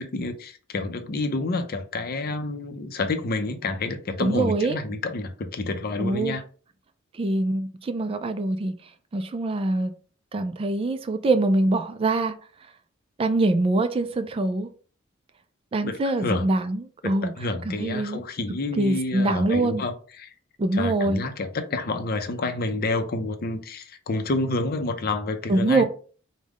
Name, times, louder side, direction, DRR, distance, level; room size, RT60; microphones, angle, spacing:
voice 1, 0.0-6.4 15.8-16.5 17.0-20.3 20.7-25.8, left 2 dB, 50° left, 0.5 m, -29 dB
voice 2, 4.2-4.8 6.0-6.4 7.1-8.7 9.1-9.9 10.3-12.3 13.2-14.7 15.7-17.3 17.6-18.2 18.8-19.8 20.6-21.2 25.5-25.8, right 2 dB, 30° right, 0.3 m, -24 dB
4.8 x 2.1 x 3.5 m
head